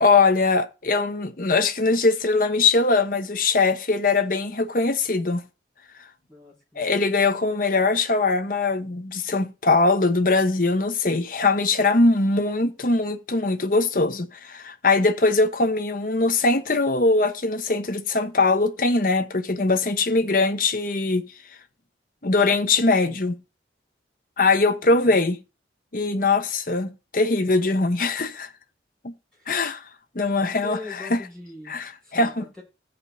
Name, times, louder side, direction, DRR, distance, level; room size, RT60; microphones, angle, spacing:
voice 1, 0.0-5.4 6.8-21.2 22.2-23.4 24.4-25.4 25.9-28.5 29.0-29.1 29.5-29.9 30.1-31.2 31.7-32.4, left 3 dB, 50° left, 1.0 m, -21 dB
voice 2, 6.3-7.1 24.9-25.2 29.3-29.5 30.4-31.8 32.0-32.6, left 3 dB, 5° left, 6.2 m, -41 dB
15.5 x 5.2 x 4.2 m
head